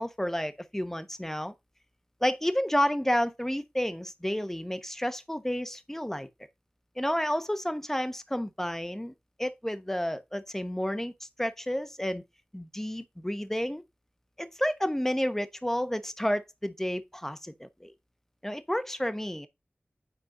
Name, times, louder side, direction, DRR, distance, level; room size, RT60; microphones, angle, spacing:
voice 1, 0.0-1.5 2.2-6.3 7.0-12.2 12.5-13.8 14.4-17.9 18.4-19.5, equal, 10° left, 1.0 m, -31 dB
7.5 x 4.5 x 3.8 m
wide cardioid pair, 45°, 4 cm